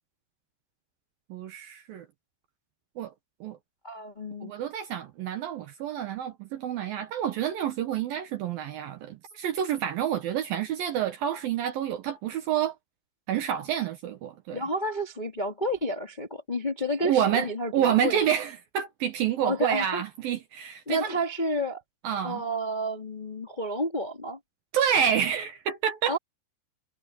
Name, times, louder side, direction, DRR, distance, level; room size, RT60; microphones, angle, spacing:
voice 1, 1.3-2.1 3.0-3.1 3.4-3.6 4.4-12.8 13.3-14.6 17.0-21.2 22.0-22.4 24.7-26.2, right 9 dB, 70° right, 2.3 m, -28 dB
voice 2, 3.8-4.5 14.5-18.2 19.4-20.0 20.9-21.8 22.2-24.4 26.0-26.2, equal, 70° left, 0.4 m, -30 dB
omnidirectional pair, 5.5 m